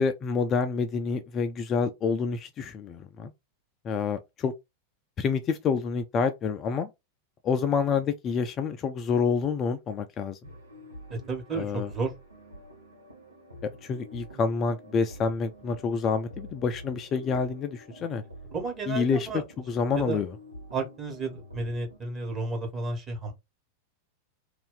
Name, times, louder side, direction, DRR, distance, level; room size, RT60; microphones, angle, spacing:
voice 1, 0.0-3.3 3.8-4.5 5.2-6.9 7.4-10.4 11.5-11.9 13.6-18.2 18.9-19.3 19.7-20.3, left 5 dB, 30° left, 0.4 m, -28 dB
sound 1, 10.4-22.0, equal, 80° right, 1.0 m, -47 dB
voice 2, 11.1-12.1 18.5-19.4 19.9-20.2 20.7-23.3, right 3 dB, 20° right, 1.3 m, -32 dB
2.6 x 2.4 x 3.7 m
figure-of-eight pair, 90°, 0 cm